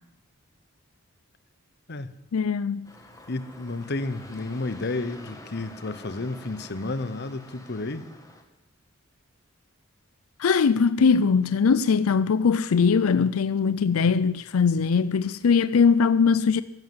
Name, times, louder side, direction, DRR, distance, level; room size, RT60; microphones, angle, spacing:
voice 1, 2.3-2.9 10.4-16.6, left 5 dB, 90° left, 0.5 m, -21 dB
sound 1, 2.8-8.4, left 1 dB, 15° left, 1.8 m, -47 dB
voice 2, 3.3-8.0, left 2 dB, 50° left, 0.9 m, -31 dB
14.0 x 11.5 x 7.9 m
head